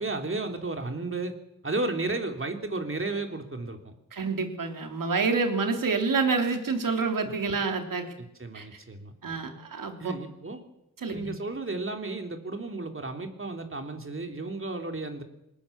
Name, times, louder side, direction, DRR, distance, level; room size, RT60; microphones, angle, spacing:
voice 1, 0.0-1.3 1.6-4.0 8.2-9.1 10.0-10.6 11.1-15.2, right 2 dB, 40° right, 5 dB, 3.3 m, -33 dB
voice 2, 4.1-8.1 8.5-8.7 9.2-10.1 11.0-11.3, right 4 dB, 75° right, 5 dB, 3.3 m, -28 dB
21.0 x 19.5 x 7.3 m, 0.83 s
cardioid pair, 60°, 33 cm